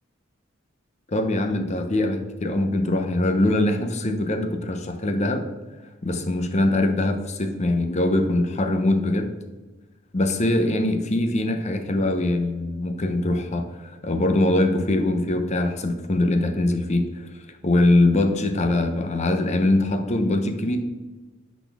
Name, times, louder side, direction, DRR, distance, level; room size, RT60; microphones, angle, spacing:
voice 1, 1.1-5.5 6.0-9.3 10.1-20.8, left 1 dB, 35° left, 7 dB, 0.7 m, -22 dB
10.0 x 4.2 x 3.5 m, 1.2 s
head